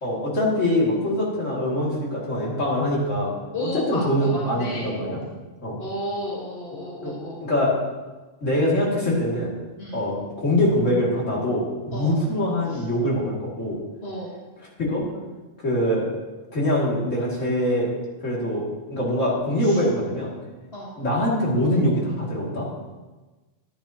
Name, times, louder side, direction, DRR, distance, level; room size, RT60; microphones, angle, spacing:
voice 1, 0.0-5.2 5.6-5.8 7.0-7.1 7.4-7.7 8.4-9.5 9.9-13.8 14.9-15.0 15.6-16.1 16.5-17.9 18.2-20.3 21.0-22.7, left 1 dB, 65° left, -5 dB, 2.8 m, -23 dB
voice 2, 3.5-5.0 5.8-7.4 9.8-10.1 11.9-12.2 12.7-12.8 14.0-14.4 19.6-19.8 20.7-21.0, left 1 dB, 50° left, -5 dB, 1.8 m, -33 dB
11.5 x 10.5 x 2.9 m, 1.2 s
omnidirectional pair, 1.4 m